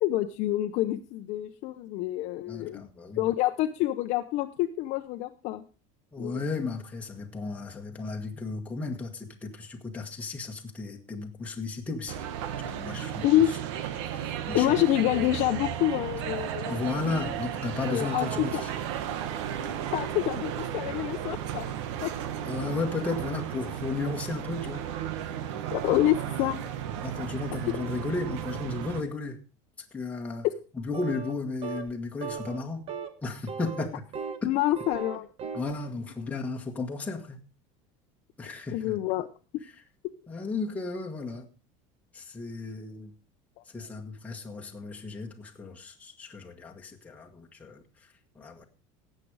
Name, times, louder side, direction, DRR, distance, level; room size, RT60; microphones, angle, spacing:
voice 1, 0.0-2.9 3.2-5.6 6.2-6.4 13.2-13.5 14.5-17.3 17.9-18.6 19.9-21.7 22.0-22.1 25.7-26.6 34.4-35.3 38.7-39.3, left 14 dB, 50° left, 0.8 m, -27 dB
voice 2, 2.5-3.2 6.1-12.2 12.6-13.2 14.1-14.7 16.7-18.7 22.4-24.9 27.0-29.4 29.9-30.5 30.7-32.9 33.2-34.1 34.4-34.5 35.5-37.4 38.4-38.9 40.3-41.5 42.1-43.1 43.7-47.8 48.3-48.6, left 3 dB, 10° left, 1.5 m, -34 dB
sound 1, 12.1-29.0, right 10 dB, 80° right, 1.4 m, -34 dB
sound 2, 30.9-31.4 31.6-31.9 32.2-32.6 32.9-33.1 33.5-34.5 34.7-35.7, right 6 dB, 40° right, 1.4 m, -37 dB
17.0 x 7.8 x 4.8 m
cardioid pair, 155°, 15 cm